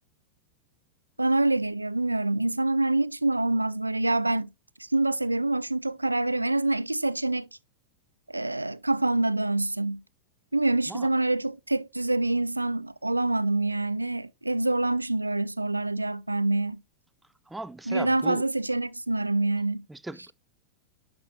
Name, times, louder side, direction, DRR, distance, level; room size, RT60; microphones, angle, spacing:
voice 1, 1.2-4.5 4.9-7.5 8.3-10.0 10.5-16.8 17.9-19.9, right 2 dB, 85° right, 0.3 m, -26 dB
voice 2, 17.5-18.4 19.9-20.3, right 2 dB, 5° right, 0.4 m, -37 dB
10.5 x 6.3 x 2.4 m
figure-of-eight pair, 90°, 0 cm